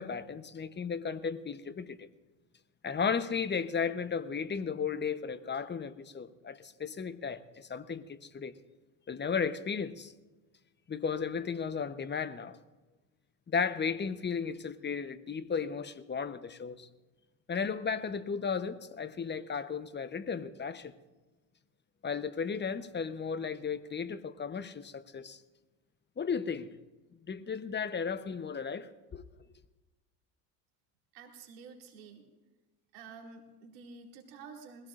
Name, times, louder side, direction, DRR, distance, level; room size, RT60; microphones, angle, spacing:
voice 1, 0.0-2.1 2.8-8.5 9.1-10.1 10.9-12.6 13.5-16.9 17.5-20.9 22.0-25.4 26.2-26.7 27.3-29.2, left 6 dB, 20° left, 0.9 m, -35 dB
voice 2, 31.1-32.3 32.9-34.9, right 5 dB, 85° right, 2.6 m, -50 dB
21.0 x 16.5 x 2.5 m
hypercardioid pair, 80°, 49 cm